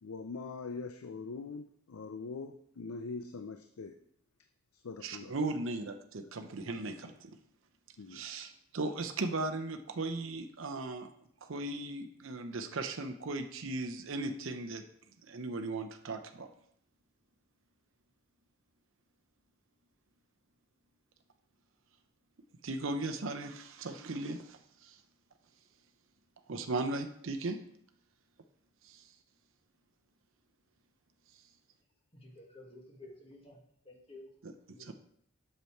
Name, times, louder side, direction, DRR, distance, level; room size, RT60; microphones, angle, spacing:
voice 1, 0.0-4.0 4.7-5.4 8.0-8.3, left 4 dB, 80° left, 9 dB, 0.5 m, -42 dB
voice 2, 5.0-7.3 8.1-11.1 11.4-14.8 15.3-16.5 22.6-25.0 26.5-27.6 28.8-29.1 34.4-34.5 34.8-34.9, right 2 dB, 65° right, 6 dB, 0.7 m, -37 dB
voice 3, 32.1-33.6 33.8-34.3 34.7-34.9, left 2 dB, 25° left, 0 dB, 1.6 m, -52 dB
8.2 x 6.8 x 4.5 m, 0.69 s
head